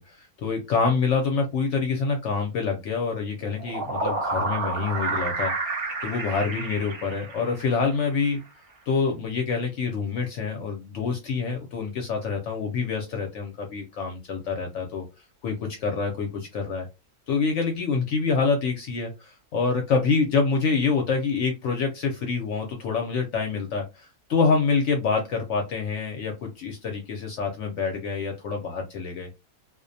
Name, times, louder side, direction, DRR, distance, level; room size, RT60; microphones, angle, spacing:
voice 1, 0.0-5.5 6.0-8.4 8.9-15.0 15.4-16.9 17.3-29.3, left 4 dB, 65° left, 3 dB, 0.8 m, -26 dB
sound 1, 3.4-7.9, right 3 dB, 55° right, 0.8 m, -30 dB
2.4 x 2.1 x 2.5 m, 0.24 s
omnidirectional pair, 1.5 m